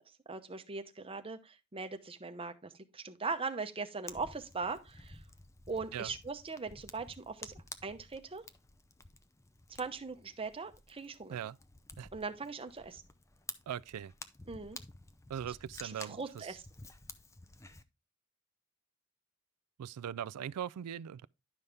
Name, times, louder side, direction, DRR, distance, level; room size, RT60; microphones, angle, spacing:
voice 1, 0.3-5.2 5.7-8.4 9.7-11.4 12.1-13.0 14.5-14.8 15.8-16.6, right 4 dB, 25° right, 0.8 m, -40 dB
Fire, 4.1-17.8, left 3 dB, 15° left, 0.5 m, -52 dB
voice 2, 13.7-14.1 15.3-16.5 19.8-21.3, right 9 dB, 85° right, 0.3 m, -40 dB
11.0 x 5.6 x 3.4 m
head